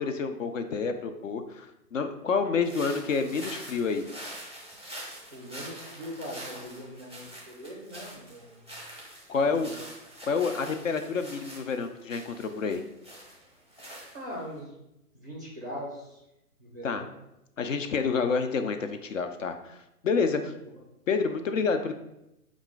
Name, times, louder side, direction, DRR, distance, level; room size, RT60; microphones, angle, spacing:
voice 1, 0.0-4.1 9.3-9.7 10.2-12.8 16.8-17.0 17.6-20.5 21.1-21.9, left 5 dB, 55° left, 7 dB, 0.5 m, -28 dB
sound 1, 2.6-14.5, right 1 dB, 5° left, 0.8 m, -45 dB
voice 2, 5.3-8.8 9.3-9.9 14.1-14.7 15.1-16.2 16.6-17.1 20.3-20.6, equal, 15° right, -4 dB, 0.4 m, -41 dB
5.4 x 2.4 x 3.8 m, 0.88 s
figure-of-eight pair, 135°, 46 cm